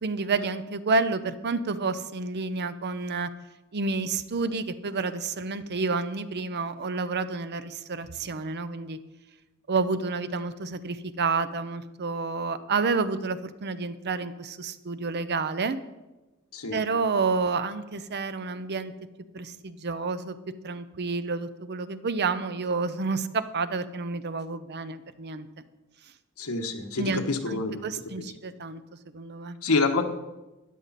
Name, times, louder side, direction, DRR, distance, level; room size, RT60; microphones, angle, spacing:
voice 1, 0.0-3.3 3.7-9.0 9.7-15.8 16.7-18.9 19.3-20.4 20.6-25.5 27.0-28.8 29.1-29.6, right 4 dB, 50° right, 12 dB, 0.7 m, -29 dB
voice 2, 26.4-27.8 28.2-28.3 29.6-30.0, left 3 dB, 85° left, 5 dB, 1.3 m, -27 dB
13.0 x 10.5 x 4.2 m, 1.1 s
head